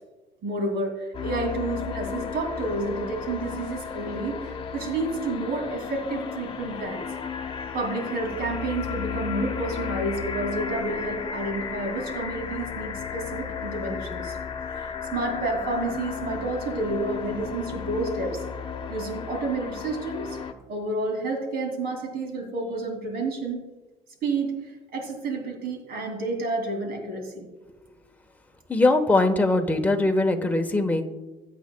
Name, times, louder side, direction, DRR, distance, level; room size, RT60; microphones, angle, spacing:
voice 1, 0.4-7.1 7.7-14.4 14.7-18.4 18.9-20.4 20.7-23.7 24.2-27.5, right 2 dB, 65° right, 2 dB, 2.7 m, -30 dB
sound 1, 1.1-20.5, left 6 dB, 30° left, 1.0 m, -34 dB
voice 2, 28.7-31.0, left 2 dB, 10° left, 3 dB, 1.1 m, -21 dB
20.5 x 8.5 x 2.3 m, 1.1 s
cardioid pair, 110°, 17 cm